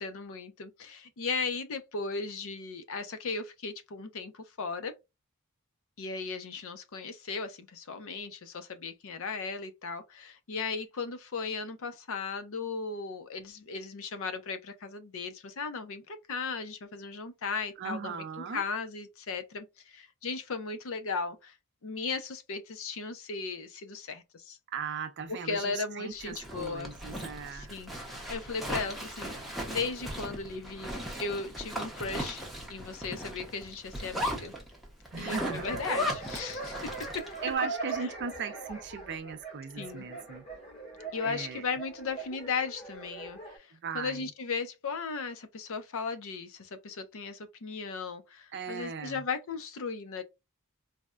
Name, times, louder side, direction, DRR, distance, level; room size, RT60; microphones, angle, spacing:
voice 1, 0.0-4.9 6.0-21.5 21.8-24.6 25.3-26.9 27.5-29.3 29.7-32.4 32.7-34.5 35.2-37.3 39.7-40.0 41.1-50.2, left 4 dB, 65° left, 0.6 m, -36 dB
voice 2, 17.8-18.6 24.7-27.7 35.1-35.8 37.4-40.4 41.2-41.6 43.7-44.2 48.5-49.2, right 5 dB, 50° right, 0.5 m, -38 dB
Zipper (clothing), 26.2-37.4, equal, ahead, 0.7 m, -37 dB
sound 1, 35.3-43.6, right 3 dB, 25° left, 1.2 m, -41 dB
4.1 x 2.1 x 2.3 m
head